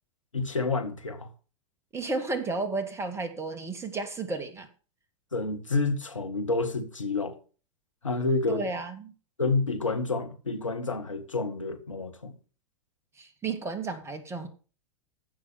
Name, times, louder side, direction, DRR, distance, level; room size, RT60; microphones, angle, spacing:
voice 1, 0.3-1.3 5.3-7.4 8.0-8.6 9.4-12.4, left 3 dB, 85° left, 2.0 m, -29 dB
voice 2, 1.9-4.7 8.5-9.1 13.2-14.5, right 3 dB, 15° right, 2.5 m, -32 dB
15.5 x 6.4 x 7.1 m
figure-of-eight pair, 95°, 16 cm